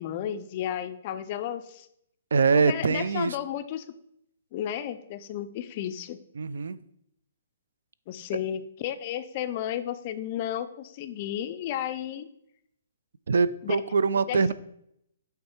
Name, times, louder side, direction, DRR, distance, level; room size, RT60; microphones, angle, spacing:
voice 1, 0.0-1.9 2.6-3.8 4.5-6.2 8.1-12.3 13.6-13.8 14.3-14.5, left 10 dB, 25° left, 11 dB, 0.3 m, -33 dB
voice 2, 2.3-3.4 6.4-6.8 13.3-14.5, right 5 dB, 80° right, 16 dB, 0.4 m, -23 dB
8.5 x 3.4 x 4.4 m, 0.75 s
hypercardioid pair, 175°, 0 cm